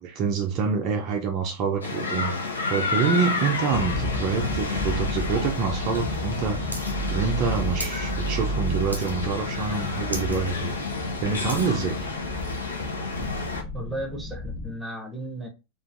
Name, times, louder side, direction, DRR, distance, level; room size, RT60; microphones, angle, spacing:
voice 1, 0.0-2.4 2.7-6.6 6.9-10.8 11.2-12.1, right 5 dB, 40° right, 0.4 m, -26 dB
sound 1, 1.8-13.6, left 4 dB, 75° left, 0.6 m, -30 dB
sound 2, 3.7-14.7, equal, 35° left, 0.9 m, -32 dB
sound 3, 6.7-6.9 7.2-8.0 8.4-8.6 8.9-9.4 9.7-9.8 10.0-10.4 10.8-11.8 12.4-12.5, right 1 dB, 85° right, 0.6 m, -36 dB
voice 2, 13.7-15.5, right 1 dB, 5° right, 0.7 m, -34 dB
2.4 x 2.3 x 2.6 m
figure-of-eight pair, 90°, 0 cm